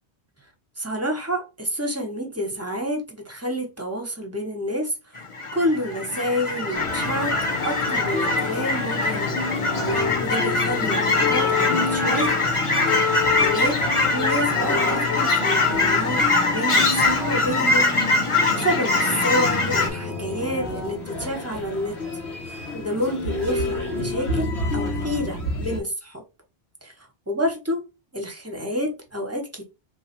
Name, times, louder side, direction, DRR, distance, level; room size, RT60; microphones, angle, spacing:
voice 1, 0.8-4.9 5.5-7.3 7.6-12.4 13.0-13.8 14.1-22.0 22.5-26.2 26.8-26.9 27.3-27.8 28.1-29.6, equal, 15° right, 0.9 m, -29 dB
Fowl / Chirp tweet, 5.2-19.9, left 3 dB, 35° left, 0.6 m, -23 dB
sound 1, 6.7-25.8, left 3 dB, 90° left, 1.7 m, -28 dB
3.2 x 2.3 x 4.3 m
omnidirectional pair, 1.1 m